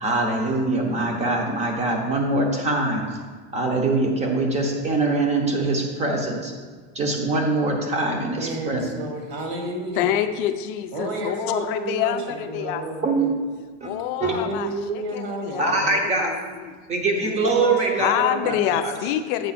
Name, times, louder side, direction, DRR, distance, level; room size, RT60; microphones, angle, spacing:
voice 1, 0.0-3.0 3.5-6.5 6.9-8.8 13.0-13.4 13.8-13.9 14.2-14.3 15.6-16.4 16.9-18.1 18.4-18.5 18.8-18.9, right 2 dB, 20° right, 2 dB, 0.9 m, -23 dB
voice 2, 8.3-10.1 10.9-13.3 14.2-15.9 17.2-18.8, right 2 dB, 45° right, 2 dB, 1.5 m, -31 dB
voice 3, 10.0-12.8 13.8-16.3 16.6-16.7 18.0-19.5, left 11 dB, 50° left, 10 dB, 0.5 m, -26 dB
7.8 x 5.3 x 4.2 m, 1.5 s
supercardioid pair, 165°, 35 cm